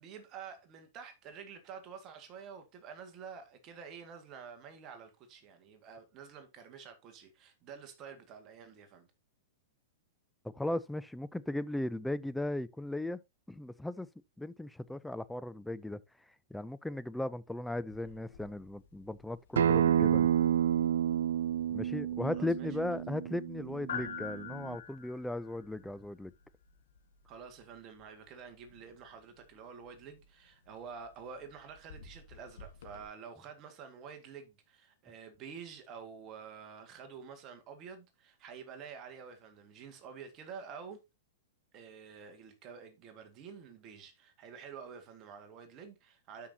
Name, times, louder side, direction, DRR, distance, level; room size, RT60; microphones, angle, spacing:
voice 1, 0.0-9.1 22.3-23.0 27.3-41.0 41.7-46.5, right 6 dB, 35° right, 2.0 m, -49 dB
voice 2, 10.4-13.2 13.5-14.1 14.4-16.0 16.5-20.3 21.7-26.3, left 1 dB, 5° left, 0.5 m, -37 dB
sound 1, 17.9-33.0, left 7 dB, 75° left, 1.8 m, -50 dB
Acoustic guitar, 19.6-24.8, right 10 dB, 75° right, 0.3 m, -30 dB
12.5 x 5.6 x 2.9 m
hypercardioid pair, 110°, 0 cm